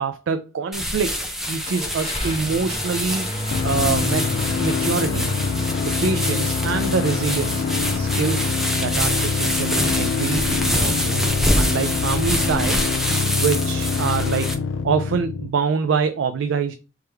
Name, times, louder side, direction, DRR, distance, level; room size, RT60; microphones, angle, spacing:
voice 1, 0.0-4.3 4.6-5.3 5.8-7.7 8.0-8.5 8.8-12.8 13.4-14.5 14.8-16.7, right 5 dB, 85° right, 0.4 m, -25 dB
sound 1, 0.7-14.5, equal, ahead, 0.6 m, -26 dB
Car / Engine starting, 1.6-8.5, left 1 dB, 30° left, 1.1 m, -33 dB
sound 2, 3.5-15.5, left 5 dB, 75° left, 0.3 m, -25 dB
3.5 x 3.3 x 4.4 m
head